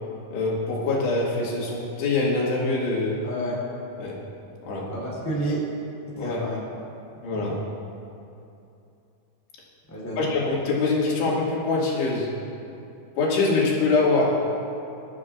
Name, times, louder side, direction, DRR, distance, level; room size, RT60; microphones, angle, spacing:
voice 1, 0.3-3.2 4.0-4.2 4.6-4.9 6.2-6.4 7.2-7.6 10.2-12.3 13.2-14.4, left 3 dB, 90° left, -5 dB, 4.2 m, -24 dB
voice 2, 3.2-3.6 4.9-5.7 6.1-6.6 7.3-7.6 9.9-10.3, right 1 dB, 5° left, -7 dB, 2.3 m, -30 dB
21.0 x 12.5 x 2.4 m, 2.7 s
omnidirectional pair, 4.7 m